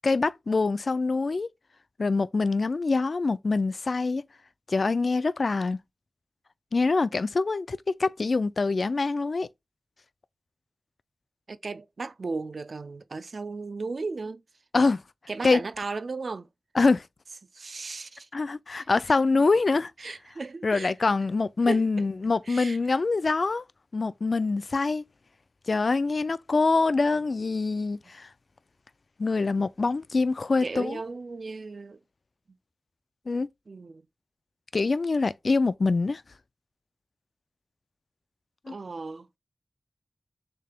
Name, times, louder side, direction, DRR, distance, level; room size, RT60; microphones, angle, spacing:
voice 1, 0.0-1.5 2.0-4.2 4.7-5.8 6.7-9.5 14.7-15.0 15.4-15.6 16.7-17.1 18.3-19.9 20.6-23.6 23.9-25.1 25.7-28.3 29.2-31.0 33.3-33.5 34.7-36.2 38.7-38.8, left 3 dB, 60° left, 0.3 m, -25 dB
voice 2, 11.5-14.4 15.3-16.5 17.5-18.3 20.0-20.9 21.7-21.8 22.5-23.0 30.6-32.0 33.7-34.0 38.7-39.3, right 3 dB, 65° right, 0.4 m, -35 dB
6.5 x 3.4 x 2.3 m
cardioid pair, 45°, 0 cm